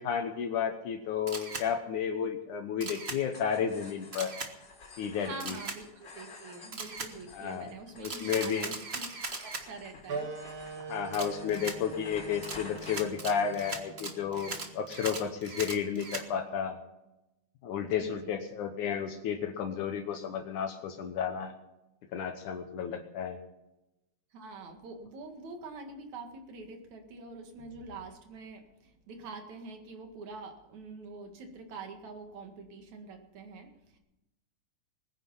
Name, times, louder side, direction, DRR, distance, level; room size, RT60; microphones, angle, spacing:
voice 1, 0.0-4.3 5.0-5.6 7.3-7.7 8.0-8.7 10.9-16.8 17.6-21.5 22.1-23.4, left 7 dB, 75° left, 5 dB, 2.5 m, -32 dB
Camera, 1.3-1.7 2.8-3.2 4.1-4.5 5.4-5.8 6.7-7.1 8.0-9.6 11.1-11.8 12.4-16.3, right 3 dB, 80° right, 0.5 m, -39 dB
sound 1, 3.3-13.8, left 3 dB, 35° left, 3.5 m, -51 dB
voice 2, 5.2-9.2 9.4-10.3 17.8-18.5 24.3-34.0, right 3 dB, 65° right, 4 dB, 3.2 m, -45 dB
Wind instrument woodwind instrument, 10.1-15.2, right 4 dB, 45° right, 2.8 m, -43 dB
20.5 x 9.8 x 5.7 m, 0.93 s
omnidirectional pair, 3.6 m